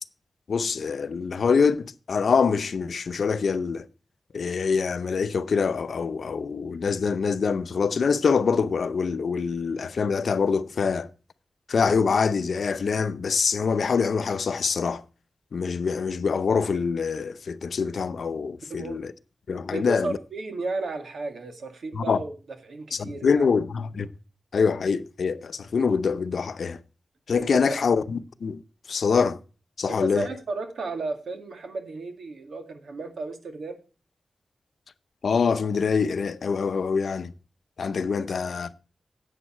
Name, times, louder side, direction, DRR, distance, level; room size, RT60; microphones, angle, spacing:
voice 1, 0.5-3.9 4.3-11.1 11.7-15.0 15.5-19.1 19.5-20.2 21.9-22.2 22.9-24.1 24.5-26.8 27.3-28.6 28.9-29.4 29.8-30.3 35.2-37.3 37.8-38.7, left 5 dB, 70° left, 0.6 m, -25 dB
voice 2, 19.7-22.3 22.6-23.5 27.4-27.8 29.9-33.8, right 3 dB, 80° right, 1.9 m, -34 dB
11.0 x 8.2 x 4.3 m
wide cardioid pair, 150°, 0 cm